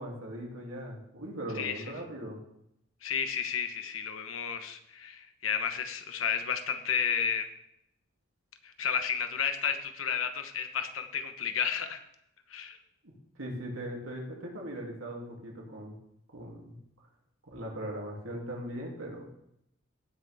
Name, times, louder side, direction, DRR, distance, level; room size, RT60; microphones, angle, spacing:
voice 1, 0.0-2.4 13.4-15.9 16.3-16.8 17.5-19.3, right 1 dB, 85° right, -1 dB, 2.8 m, -39 dB
voice 2, 3.0-7.5 8.6-12.0 12.5-12.8, left 7 dB, 75° left, 8 dB, 1.1 m, -32 dB
17.0 x 6.4 x 3.6 m, 0.78 s
head